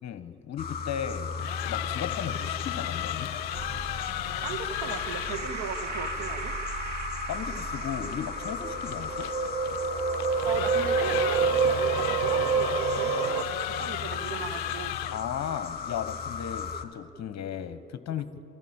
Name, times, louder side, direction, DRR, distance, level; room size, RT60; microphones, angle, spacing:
voice 1, 0.0-1.3 1.7-3.3 7.3-9.3 15.1-18.3, left 9 dB, 35° left, 11 dB, 1.2 m, -35 dB
sound 1, 0.6-16.8, left 6 dB, 15° left, 2.4 m, -36 dB
sound 2, 1.2-5.5 8.1-15.3, left 19 dB, 50° left, 0.5 m, -36 dB
sound 3, 3.5-13.4, right 6 dB, 35° right, 1.7 m, -30 dB
voice 2, 4.4-6.5 10.4-13.4 13.7-14.9, right 7 dB, 50° right, 9 dB, 1.8 m, -37 dB
28.0 x 13.0 x 8.8 m, 2.7 s
hypercardioid pair, 75°, 49 cm